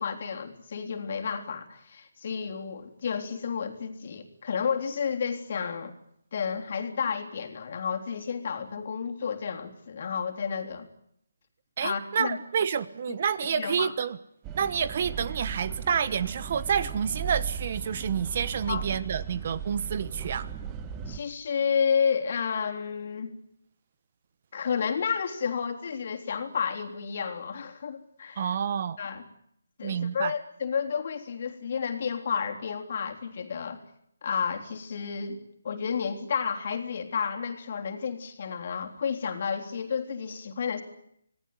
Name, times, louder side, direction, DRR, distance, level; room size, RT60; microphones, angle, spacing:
voice 1, 0.0-5.9 6.3-10.9 11.8-12.4 13.1-13.2 13.5-13.9 18.7-18.9 21.1-23.3 24.5-28.5 29.0-29.2 29.8-33.8 34.2-35.4 35.6-40.8, left 6 dB, 45° left, 5 dB, 3.5 m, -31 dB
voice 2, 11.8-14.2 14.5-20.5 28.4-29.0 29.8-30.3, right 7 dB, 40° right, 16 dB, 1.2 m, -29 dB
sound 1, 14.4-21.2, right 7 dB, 15° right, 1.4 m, -37 dB
26.5 x 18.5 x 9.5 m, 0.72 s
hypercardioid pair, 165°, 0 cm